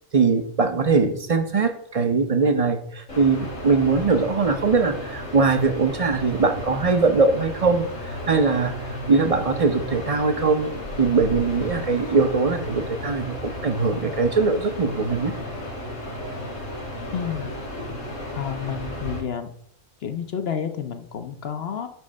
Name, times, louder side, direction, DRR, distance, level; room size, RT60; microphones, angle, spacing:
voice 1, 0.1-10.7 11.0-15.3, right 4 dB, 35° right, 7 dB, 0.7 m, -21 dB
sound 1, 3.1-19.2, equal, 85° left, 3.0 m, -34 dB
voice 2, 17.1-17.6 18.3-19.5 20.0-21.9, left 8 dB, 60° left, 7 dB, 0.8 m, -30 dB
9.2 x 3.2 x 6.3 m, 0.64 s
omnidirectional pair, 1.3 m